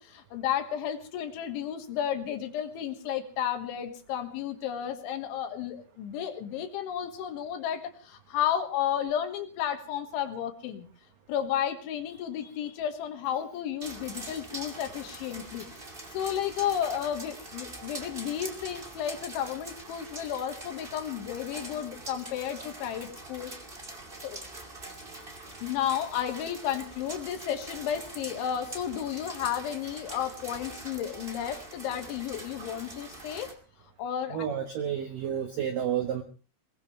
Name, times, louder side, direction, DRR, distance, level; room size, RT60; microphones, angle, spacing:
voice 1, 0.0-10.9 11.3-15.7 16.1-23.5 24.2-24.4 25.6-33.5 34.0-34.5, left 9 dB, 75° left, 7 dB, 3.8 m, -32 dB
sound 1, 13.8-33.5, right 2 dB, 45° right, 0.7 m, -44 dB
voice 2, 34.3-36.2, right 9 dB, 80° right, 7 dB, 1.9 m, -31 dB
21.5 x 20.5 x 3.2 m, 0.36 s
omnidirectional pair, 5.8 m